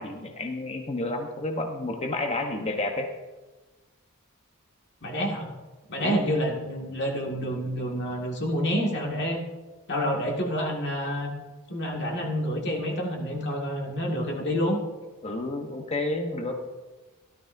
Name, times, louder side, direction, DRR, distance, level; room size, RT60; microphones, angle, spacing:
voice 1, 0.0-3.1 6.0-6.2 15.2-16.6, left 2 dB, 30° left, 4 dB, 1.0 m, -30 dB
voice 2, 5.0-5.5 5.9-9.4 9.9-11.3 11.7-14.8, equal, 50° left, 0 dB, 2.1 m, -28 dB
17.0 x 12.0 x 2.7 m, 1.2 s
head